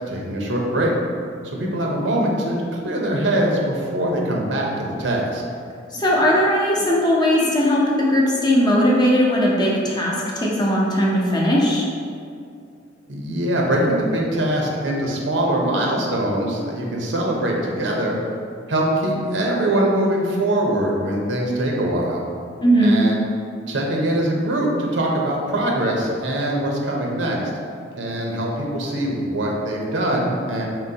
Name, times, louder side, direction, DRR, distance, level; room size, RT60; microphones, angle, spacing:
voice 1, 0.1-0.9 1.5-5.4 13.1-18.2 18.7-22.3 22.8-23.2 23.7-27.4 28.0-30.7, right 1 dB, 85° right, -1 dB, 0.7 m, -22 dB
voice 2, 5.9-11.9 22.6-23.0, equal, 25° left, -4 dB, 0.7 m, -18 dB
4.4 x 3.8 x 2.8 m, 2.3 s
head